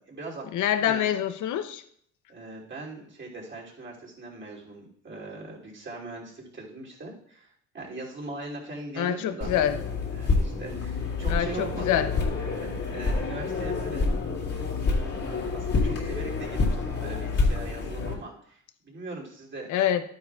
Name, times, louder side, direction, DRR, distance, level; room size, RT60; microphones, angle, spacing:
voice 1, 0.0-0.5 0.8-1.1 2.3-9.5 10.1-12.1 12.6-14.1 14.9-19.7, right 2 dB, 40° right, -3 dB, 3.0 m, -40 dB
voice 2, 0.5-1.8 9.0-9.8 11.3-12.1 19.7-20.0, left 10 dB, 80° left, 10 dB, 0.7 m, -25 dB
sound 1, 9.4-18.1, left 4 dB, 50° left, 2.3 m, -28 dB
11.5 x 9.5 x 2.4 m, 0.65 s
cardioid pair, 90°, 30 cm